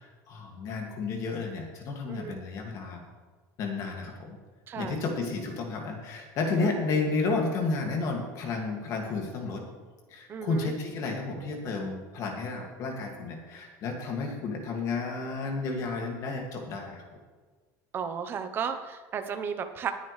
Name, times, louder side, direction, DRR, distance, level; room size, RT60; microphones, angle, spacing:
voice 1, 0.0-3.0 3.6-4.4 4.8-9.7 10.1-17.0, left 3 dB, 45° left, 2 dB, 2.3 m, -32 dB
voice 2, 2.1-2.4 4.7-5.0 6.6-6.7 10.3-10.7 17.9-19.9, right 7 dB, 25° right, 8 dB, 0.9 m, -34 dB
19.0 x 9.6 x 3.3 m, 1.4 s
cardioid pair, 170°, 8 cm